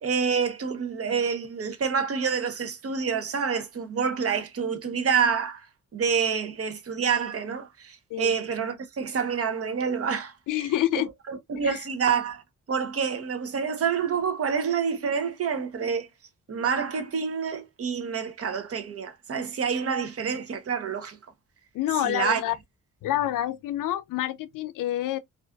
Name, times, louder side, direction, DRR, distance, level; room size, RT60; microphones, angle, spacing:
voice 1, 0.0-5.7 5.9-10.7 11.3-12.4 12.7-16.1 16.5-21.2 22.0-22.4, right 6 dB, 50° right, 0.7 m, -27 dB
voice 2, 10.5-11.1 11.6-11.8 21.7-22.5 23.0-25.2, left 13 dB, 90° left, 0.5 m, -27 dB
2.5 x 2.4 x 2.2 m
cardioid pair, 90°, 31 cm